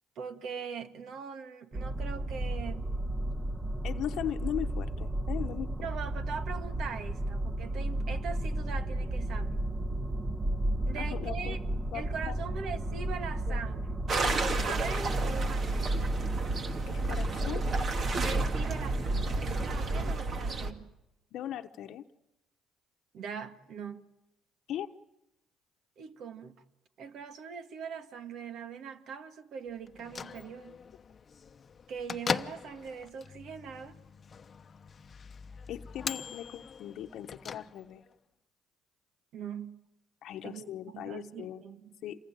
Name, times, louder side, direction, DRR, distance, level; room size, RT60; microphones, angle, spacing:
voice 1, 0.2-2.9 5.8-9.6 10.9-11.6 11.9-13.9 14.3-16.1 18.2-20.9 23.1-24.1 26.0-26.6 27.0-30.8 31.9-34.0 39.3-39.8 40.4-41.9, right 6 dB, 65° right, 2.0 m, -41 dB
sound 1, 1.7-20.1, right 1 dB, 30° right, 2.2 m, -33 dB
voice 2, 3.8-5.7 11.0-11.6 11.9-12.4 13.5-13.6 14.2-14.4 16.9-17.6 21.3-22.0 24.7-24.9 35.7-38.0 40.2-41.6 42.0-42.2, left 11 dB, 70° left, 1.1 m, -38 dB
sound 2, 14.1-20.7, right 3 dB, 45° right, 2.2 m, -33 dB
Bell / Microwave oven, 29.8-38.1, left 6 dB, 40° left, 0.9 m, -41 dB
28.0 x 21.0 x 9.1 m
supercardioid pair, 80°, 0 cm